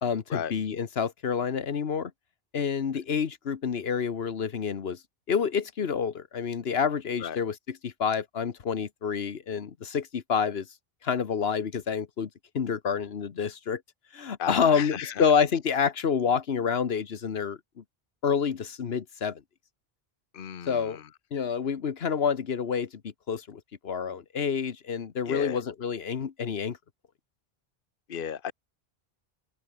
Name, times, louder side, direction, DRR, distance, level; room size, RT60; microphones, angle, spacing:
voice 1, 0.0-2.1 2.5-5.0 5.3-10.7 11.0-12.3 12.5-13.8 14.1-17.8 18.2-19.4 20.7-21.0 21.3-26.8, left 6 dB, 75° left, 1.3 m, -28 dB
voice 2, 14.4-15.3 20.3-21.0 25.3-25.6 28.1-28.5, left 8 dB, 60° left, 1.1 m, -34 dB
open air
omnidirectional pair, 1.0 m